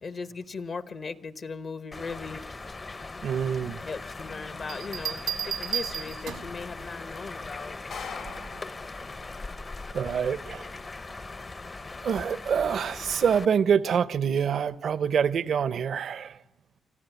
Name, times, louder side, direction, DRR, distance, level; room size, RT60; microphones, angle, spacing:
voice 1, 0.0-2.4 3.6-7.8, left 4 dB, 55° left, 1.0 m, -38 dB
sound 1, 1.9-13.5, left 3 dB, 35° left, 0.8 m, -40 dB
voice 2, 3.2-3.8 9.9-10.7 12.0-16.4, right 7 dB, 70° right, 0.7 m, -26 dB
sound 2, 3.7-10.9, left 5 dB, 80° left, 3.6 m, -47 dB
Bell, 4.7-6.6 8.3-8.6, right 9 dB, 90° right, 1.3 m, -33 dB
26.0 x 13.5 x 8.1 m
supercardioid pair, 55°, 0 cm